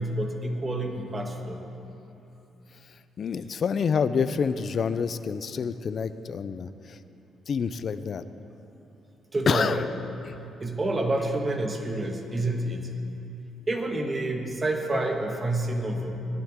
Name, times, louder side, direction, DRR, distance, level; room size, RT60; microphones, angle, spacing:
voice 1, 0.0-1.6 9.3-9.8 10.6-12.9 13.7-16.3, right 2 dB, 25° right, 3 dB, 1.6 m, -28 dB
voice 2, 3.2-7.0 7.5-8.2 9.5-9.9 10.2-10.3, left 6 dB, 50° left, 12 dB, 0.5 m, -27 dB
18.5 x 12.0 x 3.7 m, 2.9 s
cardioid pair, 90°, 0 cm